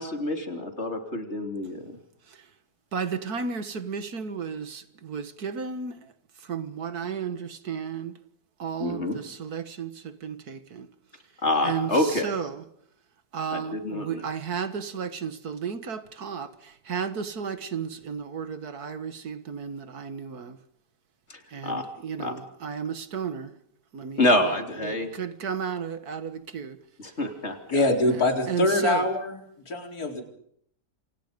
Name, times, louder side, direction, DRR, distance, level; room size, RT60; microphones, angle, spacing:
voice 1, 0.0-1.9 8.8-9.2 11.4-12.3 13.5-14.2 21.6-21.8 22.2-22.3 24.2-25.1 27.0-27.9, left 1 dB, 40° left, 3.6 m, -27 dB
voice 2, 2.9-6.1 6.4-8.2 8.6-10.9 11.6-12.6 13.3-20.6 21.5-23.5 23.9-26.8 28.1-29.1, right 6 dB, 65° right, 2.1 m, -33 dB
voice 3, 27.7-29.4 29.7-30.2, left 2 dB, 60° left, 4.7 m, -24 dB
28.5 x 27.0 x 5.3 m
omnidirectional pair, 1.8 m